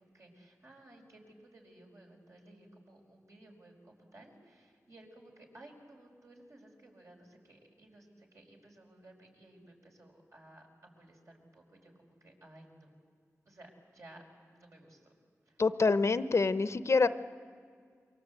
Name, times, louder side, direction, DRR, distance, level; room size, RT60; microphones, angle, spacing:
voice 1, 0.0-12.9 13.4-14.2 14.5-15.1 15.4-15.6, right 1 dB, 60° right, 1 dB, 5.0 m, -57 dB
voice 2, 15.6-17.1, left 4 dB, 55° left, 13 dB, 0.8 m, -26 dB
28.5 x 23.5 x 8.1 m, 2.1 s
wide cardioid pair, 85°, 6 cm